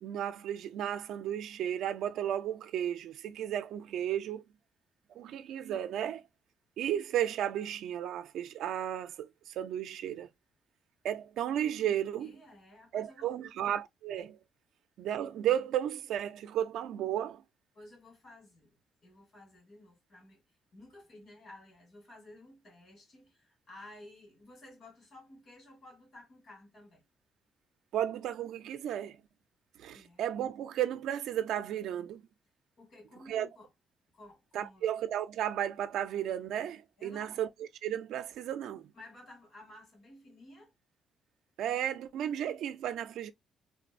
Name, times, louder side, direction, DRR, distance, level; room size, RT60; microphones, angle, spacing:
voice 1, 0.0-4.4 5.1-6.2 6.8-10.3 11.0-12.4 12.9-14.4 15.0-17.4 27.9-29.2 29.8-32.2 33.3-33.5 34.5-37.5 37.8-38.9 41.6-43.3, right 10 dB, 80° right, 0.4 m, -34 dB
voice 2, 12.2-13.4 17.7-20.4 20.7-27.0 29.9-30.3 32.8-33.7 34.1-34.9 37.0-37.4 38.9-40.7, left 1 dB, 55° left, 2.2 m, -54 dB
3.7 x 2.0 x 2.4 m
cardioid pair, 90°, 0 cm